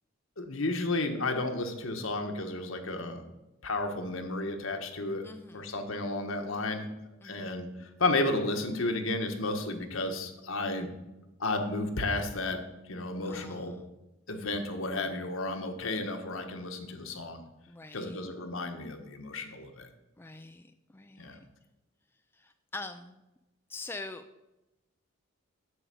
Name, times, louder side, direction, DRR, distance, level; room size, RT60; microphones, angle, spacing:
voice 1, 0.4-3.2 3.6-5.2 5.5-6.9 7.2-10.9 11.4-12.6 12.9-13.7 14.3-17.4 17.9-19.9 21.2-21.4, left 2 dB, 70° left, 5 dB, 1.3 m, -32 dB
voice 2, 5.2-5.7 7.2-7.6 13.3-13.9 17.7-18.2 20.2-20.6 20.9-21.4 22.4-23.2 23.7-24.2, left 2 dB, 10° left, 7 dB, 0.4 m, -44 dB
7.9 x 6.3 x 7.8 m, 0.99 s
head